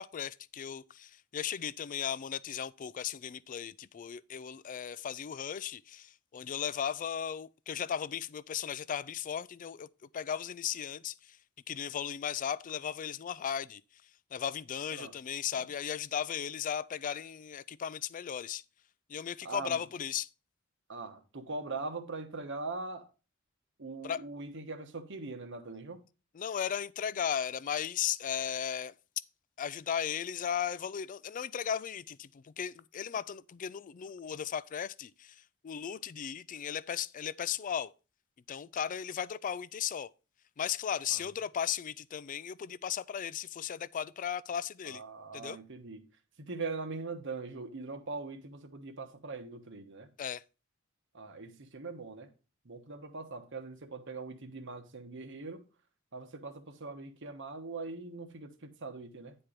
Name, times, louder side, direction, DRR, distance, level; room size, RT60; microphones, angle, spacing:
voice 1, 0.0-9.9 10.1-11.1 11.7-13.8 14.3-18.6 19.1-20.3 24.0-24.2 26.3-28.9 29.6-35.4 35.6-37.9 38.5-40.1 40.6-45.0 45.3-45.6 50.2-50.4, left 8 dB, 40° left, 0.4 m, -36 dB
voice 2, 19.4-19.8 20.9-23.1 23.8-26.0 41.1-41.2 44.8-46.1 46.4-50.1 51.1-52.3 52.6-55.6 56.1-59.3, right 3 dB, 65° right, 1.2 m, -41 dB
9.7 x 4.4 x 5.0 m
head